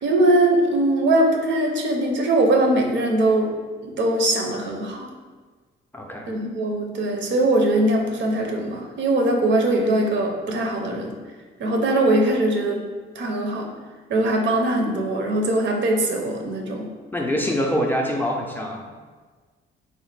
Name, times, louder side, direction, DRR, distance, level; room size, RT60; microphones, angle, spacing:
voice 1, 0.0-3.5 3.8-5.1 6.3-11.2 11.6-12.9 13.2-13.7 14.1-16.9, right 1 dB, 65° right, 2 dB, 0.6 m, -21 dB
voice 2, 5.9-6.3 17.1-18.9, equal, 10° left, 0 dB, 0.3 m, -24 dB
3.2 x 2.1 x 3.2 m, 1.4 s
cardioid pair, 90°, 20 cm